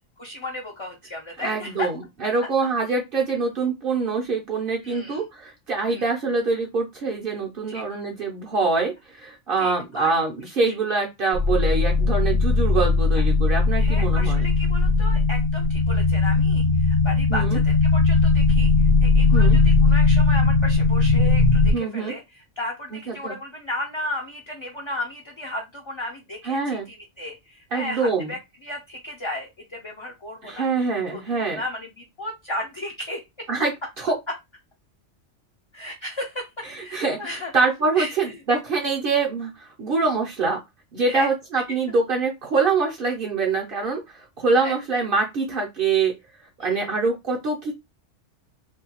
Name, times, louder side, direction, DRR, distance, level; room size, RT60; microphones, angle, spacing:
voice 1, 0.2-1.9 4.8-5.2 5.9-6.1 7.7-7.8 9.6-10.1 10.7-10.8 13.8-30.6 31.1-33.2 35.7-37.5 37.9-38.2 41.1-41.3 44.6-44.7 46.6-46.8, left 1 dB, 40° left, -1 dB, 0.4 m, -34 dB
voice 2, 1.4-14.4 17.3-17.6 19.3-19.6 21.7-22.1 22.9-23.3 26.5-26.9 27.7-28.3 30.4-31.6 33.5-34.2 36.7-37.2 37.5-40.6 40.9-46.1 46.6-47.7, right 4 dB, 55° right, 0 dB, 0.7 m, -24 dB
sound 1, 11.3-21.7, left 3 dB, 80° left, 1.1 m, -18 dB
2.6 x 2.2 x 2.8 m, 0.21 s
omnidirectional pair, 1.2 m